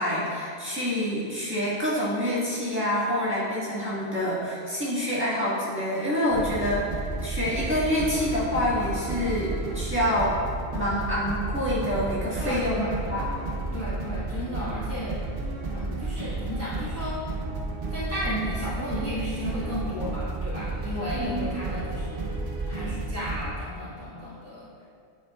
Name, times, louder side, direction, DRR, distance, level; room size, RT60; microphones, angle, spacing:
voice 1, 0.0-10.4 10.7-13.3 21.1-21.5, left 1 dB, 10° right, -10 dB, 1.5 m, -27 dB
sound 1, 6.3-23.5, right 2 dB, 55° right, 0.9 m, -32 dB
voice 2, 12.4-13.3 13.7-15.2 15.7-17.2 17.9-22.2 22.7-24.8, equal, 10° left, -11 dB, 1.2 m, -34 dB
9.8 x 4.6 x 2.4 m, 2.3 s
omnidirectional pair, 1.2 m